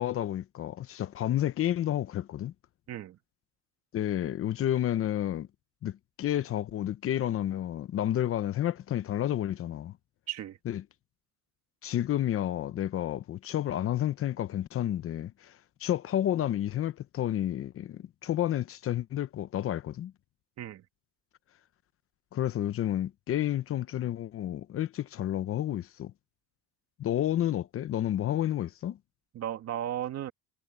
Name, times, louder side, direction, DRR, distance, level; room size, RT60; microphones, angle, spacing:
voice 1, 0.0-2.5 3.9-5.5 5.8-9.9 10.6-10.8 11.8-15.5 15.8-20.1 22.3-26.1 27.0-29.0, left 12 dB, 40° left, 0.9 m, -30 dB
voice 2, 10.3-10.6 20.6-20.8 29.3-30.3, right 11 dB, 50° right, 2.4 m, -35 dB
cardioid pair, 130°, 33 cm